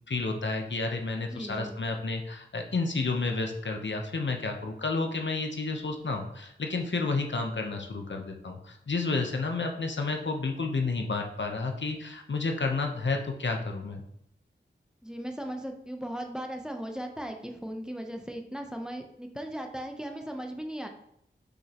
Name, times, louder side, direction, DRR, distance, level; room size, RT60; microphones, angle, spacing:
voice 1, 0.1-14.0, left 3 dB, 70° left, 3 dB, 1.0 m, -31 dB
voice 2, 1.3-1.7 15.0-20.9, right 1 dB, 5° right, 4 dB, 0.8 m, -37 dB
6.4 x 5.2 x 3.0 m, 0.75 s
wide cardioid pair, 55°, 20 cm